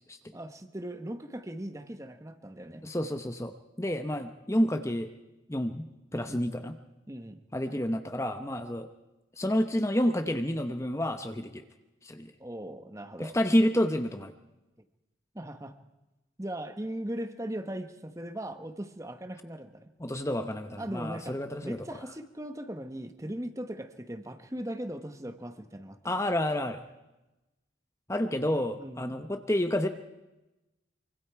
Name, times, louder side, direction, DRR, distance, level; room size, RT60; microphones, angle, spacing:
voice 1, 0.3-2.8 6.3-6.5 7.1-7.4 12.4-13.4 15.3-15.7 16.4-19.9 20.8-26.2 28.8-29.2, right 1 dB, 15° right, 9 dB, 1.0 m, -39 dB
voice 2, 2.8-5.1 5.5-6.8 7.5-8.9 9.4-11.6 12.0-12.3 13.2-14.3 20.0-21.9 26.0-26.8 28.1-29.9, left 1 dB, 15° left, 8 dB, 0.9 m, -29 dB
25.0 x 24.5 x 4.7 m, 1.0 s
head